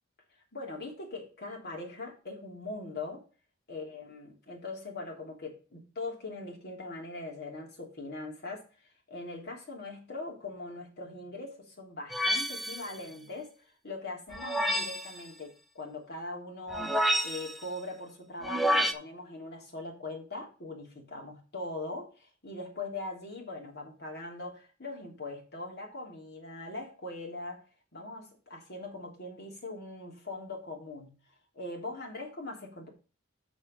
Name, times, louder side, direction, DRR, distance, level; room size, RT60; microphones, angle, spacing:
voice 1, 0.5-3.2 3.7-13.5 13.8-27.6 27.9-31.2 31.5-32.9, left 2 dB, 55° left, 3.3 m, -41 dB
sound 1, 12.1-12.9 14.3-15.1 16.7-17.6 18.4-18.9, equal, ahead, 0.9 m, -28 dB
7.2 x 6.3 x 5.3 m
head